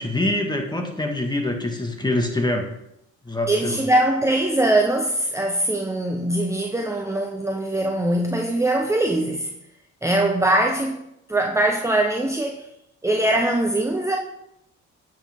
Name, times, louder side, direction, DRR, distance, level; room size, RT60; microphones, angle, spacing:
voice 1, 0.0-2.7 3.3-3.8, left 1 dB, 15° left, 1.8 m, -24 dB
voice 2, 3.5-9.5 10.0-11.0 11.3-12.7 13.0-14.2, right 1 dB, 10° right, 0.9 m, -22 dB
8.9 x 7.5 x 3.6 m
cardioid pair, 90°, 30 cm